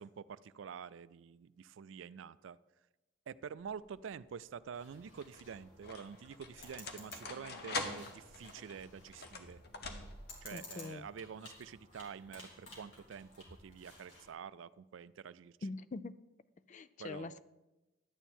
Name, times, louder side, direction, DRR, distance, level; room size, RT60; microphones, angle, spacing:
voice 1, 0.0-2.6 3.3-9.6 10.4-15.6 17.0-17.4, right 7 dB, 70° right, 17 dB, 0.4 m, -48 dB
sound 1, 3.6-4.1 5.0-10.5, left 3 dB, 55° left, 1.1 m, -45 dB
sound 2, 4.7-14.3, left 2 dB, 75° left, 3.3 m, -56 dB
voice 2, 10.5-11.1 15.6-16.1 16.7-17.4, left 3 dB, 40° left, 15 dB, 0.4 m, -43 dB
12.0 x 9.1 x 4.3 m, 1.0 s
head